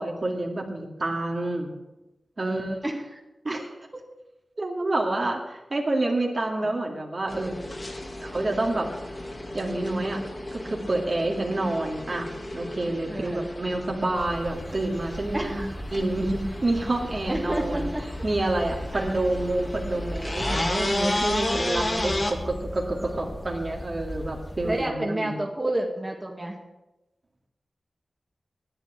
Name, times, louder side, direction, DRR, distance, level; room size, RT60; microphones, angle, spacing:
voice 1, 0.0-1.7 2.4-2.8 3.4-3.7 4.6-7.6 8.2-8.9 9.5-10.2 10.5-15.6 15.9-17.9 18.2-25.4, right 2 dB, 50° right, 0 dB, 2.3 m, -28 dB
voice 2, 2.4-3.2 13.1-13.5 15.3-15.7 17.3-18.1 18.9-19.1 21.8-22.2 24.6-26.6, right 1 dB, 20° right, 1 dB, 2.1 m, -30 dB
sound 1, 7.3-22.3, left 1 dB, 35° left, 2.2 m, -33 dB
sound 2, 14.1-24.9, equal, 5° left, 1.3 m, -37 dB
11.0 x 9.2 x 7.5 m, 1.0 s
cardioid pair, 55°, 0 cm